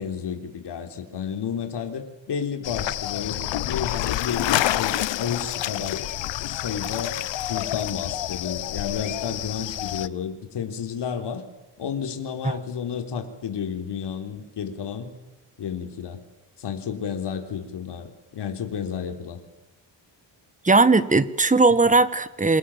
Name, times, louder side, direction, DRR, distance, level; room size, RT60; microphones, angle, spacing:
voice 1, 0.0-7.2 7.5-11.4 11.8-15.1 15.6-16.2 16.6-19.4, left 7 dB, 70° left, 6 dB, 4.0 m, -31 dB
sound 1, 2.6-10.1, left 14 dB, 85° left, 1.0 m, -28 dB
voice 2, 20.6-22.6, right 3 dB, 15° right, 14 dB, 1.6 m, -18 dB
28.5 x 27.0 x 7.5 m, 1.0 s
cardioid pair, 120°, 43 cm